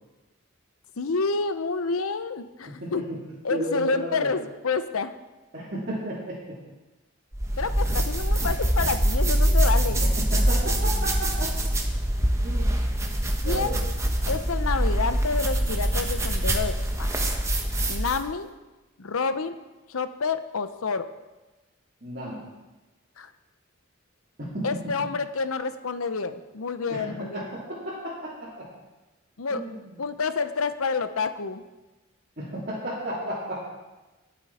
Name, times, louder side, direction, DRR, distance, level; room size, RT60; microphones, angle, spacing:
voice 1, 1.0-3.0 3.4-5.1 7.6-10.0 13.4-13.8 14.3-16.7 17.0-17.2 17.9-18.5 19.0-19.5 19.9-21.1 23.2-23.3 24.6-27.4 29.4-29.6 30.0-31.6, left 4 dB, 90° left, 11 dB, 0.8 m, -28 dB
voice 2, 2.7-3.2 3.5-4.3 5.5-6.6 10.0-11.5 12.4-12.8 13.4-13.8 22.0-22.4 24.4-24.6 26.9-28.7 29.5-29.8 32.4-33.6, right 1 dB, 45° right, -9 dB, 3.3 m, -33 dB
sound 1, 7.3-18.3, right 1 dB, 15° right, 1.0 m, -24 dB
19.5 x 7.4 x 4.3 m, 1.1 s
head